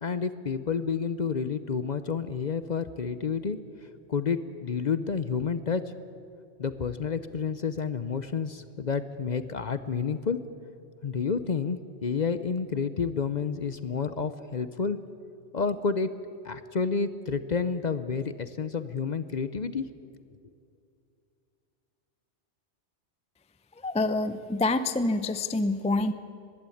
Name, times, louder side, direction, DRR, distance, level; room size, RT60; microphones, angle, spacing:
voice 1, 0.0-3.6 4.1-5.8 6.6-10.4 11.0-15.0 15.5-16.1 16.4-19.9, left 5 dB, 45° left, 12 dB, 0.7 m, -30 dB
voice 2, 23.8-26.1, left 2 dB, 10° left, 12 dB, 0.4 m, -26 dB
21.0 x 16.0 x 8.5 m, 2.4 s
omnidirectional pair, 1.2 m